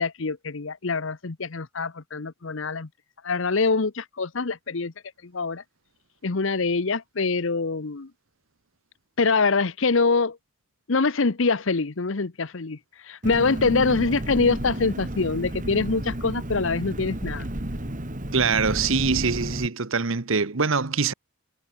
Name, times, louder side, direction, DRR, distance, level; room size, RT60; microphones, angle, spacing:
voice 1, 0.0-2.9 3.2-4.9 5.3-5.6 6.2-8.1 9.2-10.4 10.9-12.8 13.0-17.5, left 4 dB, 65° left, 0.9 m, -24 dB
Engine, 13.2-19.7, right 1 dB, 40° right, 2.5 m, -32 dB
voice 2, 18.3-21.1, right 5 dB, 70° right, 1.2 m, -24 dB
head